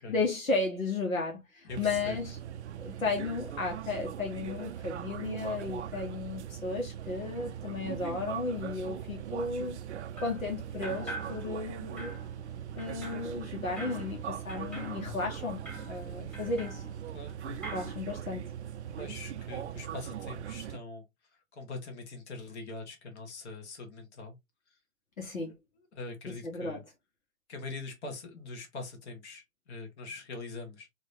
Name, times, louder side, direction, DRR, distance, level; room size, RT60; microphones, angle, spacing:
voice 1, 0.1-2.4 2.8-9.8 10.2-12.2 12.8-15.6 15.9-16.8 17.7-18.5 25.2-25.5 26.3-26.8, left 3 dB, 75° left, 1.5 m, -34 dB
voice 2, 1.6-2.2 17.1-17.6 18.8-21.0 21.3-24.4 25.4-25.5 25.9-26.8 27.5-30.9, left 3 dB, 55° left, 1.7 m, -43 dB
sound 1, 1.7-20.8, right 10 dB, 55° right, 0.5 m, -40 dB
sound 2, 10.2-10.5 10.8-11.7 12.0-17.3 17.6-18.0, right 1 dB, 5° left, 1.5 m, -45 dB
4.6 x 2.9 x 2.7 m
figure-of-eight pair, 115°, 41 cm